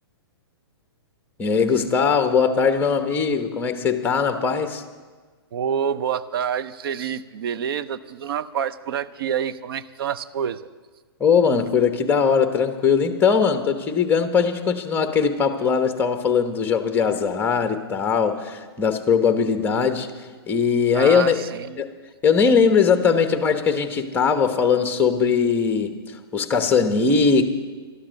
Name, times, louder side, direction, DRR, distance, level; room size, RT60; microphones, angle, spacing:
voice 1, 1.4-4.8 11.2-20.1 20.5-21.4 21.8-21.9 22.2-27.5, left 6 dB, 15° left, 7 dB, 1.1 m, -20 dB
voice 2, 5.5-10.7 20.9-21.8, right 8 dB, 60° right, 13 dB, 0.7 m, -27 dB
12.5 x 11.5 x 6.4 m, 1.4 s
hypercardioid pair, 135°, 14 cm